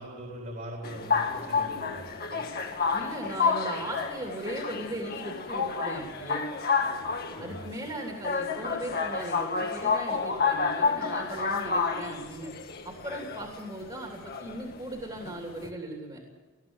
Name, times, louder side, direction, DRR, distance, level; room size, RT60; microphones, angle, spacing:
voice 1, 0.0-2.5 7.3-7.7, right 1 dB, 40° right, -1 dB, 3.8 m, -41 dB
sound 1, 0.8-15.7, left 5 dB, 45° left, 1.9 m, -30 dB
voice 2, 2.9-6.4 7.4-12.5 12.8-16.2, right 1 dB, 20° right, 0 dB, 2.9 m, -38 dB
20.0 x 15.5 x 9.7 m, 1.3 s
head